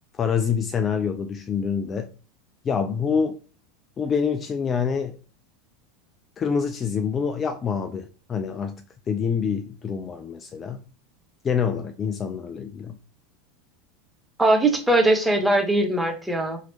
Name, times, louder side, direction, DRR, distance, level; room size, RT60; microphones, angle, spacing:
voice 1, 0.2-2.1 2.6-3.4 4.0-5.2 6.4-10.8 11.4-13.0, left 6 dB, 30° left, 0.3 m, -26 dB
voice 2, 14.4-16.6, right 2 dB, 5° right, 0.8 m, -20 dB
2.9 x 2.8 x 3.0 m
figure-of-eight pair, 80°, 0 cm